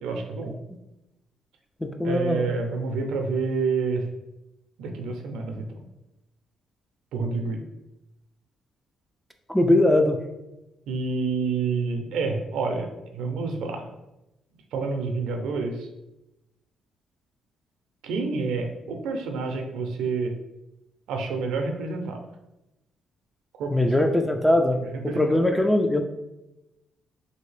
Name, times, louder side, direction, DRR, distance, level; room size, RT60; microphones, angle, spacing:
voice 1, 0.0-0.6 2.0-4.0 4.8-5.8 7.1-7.6 10.9-12.9 13.1-13.8 14.7-15.9 18.0-20.3 21.1-22.3 23.6-23.7 24.0-24.1 24.8-25.4, right 4 dB, 85° right, 4 dB, 0.5 m, -28 dB
voice 2, 1.8-2.5 9.5-10.2 23.7-24.8 25.0-26.0, left 1 dB, 10° left, 5 dB, 0.3 m, -21 dB
2.8 x 2.7 x 3.2 m, 0.94 s
cardioid pair, 90°, 0 cm